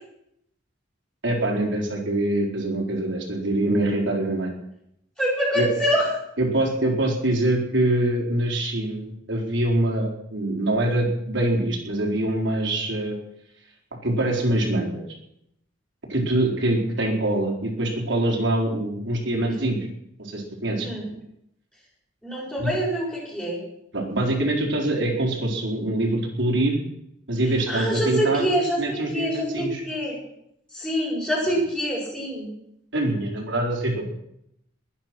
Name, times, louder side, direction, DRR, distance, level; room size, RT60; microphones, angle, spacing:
voice 1, 1.2-4.5 5.5-5.7 6.4-13.1 14.0-15.0 16.1-19.8 20.2-20.9 22.6-22.7 23.9-26.8 27.3-28.5 28.8-29.8 32.9-34.1, right 1 dB, 70° right, -1 dB, 4.5 m, -24 dB
voice 2, 5.2-6.1 20.8-21.1 22.2-23.6 27.7-30.2 30.7-32.5, equal, 5° left, -5 dB, 7.3 m, -25 dB
22.0 x 9.9 x 6.2 m, 0.77 s
head